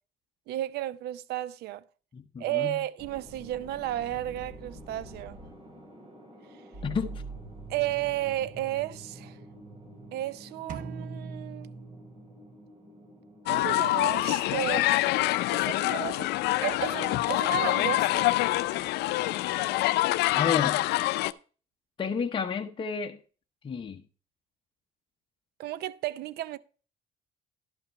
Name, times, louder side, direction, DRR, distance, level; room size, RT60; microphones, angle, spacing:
voice 1, 0.5-1.8 2.4-5.4 7.7-9.4 10.1-11.8 13.5-14.9 15.5-16.3 16.6-18.3 25.6-26.6, right 14 dB, 75° right, 0.5 m, -33 dB
voice 2, 2.1-2.8 6.8-7.2 20.3-20.8 22.0-23.2 23.6-24.0, left 6 dB, 30° left, 0.9 m, -31 dB
sound 1, 3.0-13.5, right 2 dB, 35° right, 2.9 m, -46 dB
sound 2, 10.7-12.7, right 4 dB, 50° right, 1.2 m, -41 dB
sound 3, 13.5-21.3, left 17 dB, 80° left, 0.5 m, -26 dB
11.5 x 5.8 x 4.4 m
cardioid pair, 110°, 17 cm